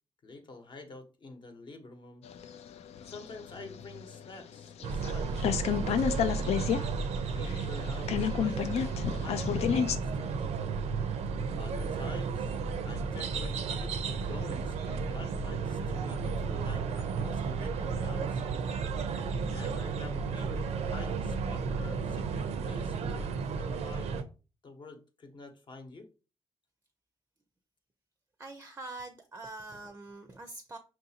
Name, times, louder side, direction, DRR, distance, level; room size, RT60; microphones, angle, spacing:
voice 1, 0.2-2.2 3.0-5.9 6.4-6.8 7.2-10.4 11.6-12.6 12.8-18.4 19.0-24.1 24.6-26.1, left 3 dB, 45° left, 0.9 m, -48 dB
sound 1, 2.3-5.1 5.4-6.8 7.1-7.2 7.5-10.0, left 8 dB, 75° left, 0.4 m, -31 dB
sound 2, 4.8-24.2, right 5 dB, 80° right, 0.5 m, -33 dB
voice 2, 28.4-30.8, right 2 dB, 20° right, 0.5 m, -44 dB
5.6 x 2.6 x 2.7 m
cardioid pair, 100°, 11 cm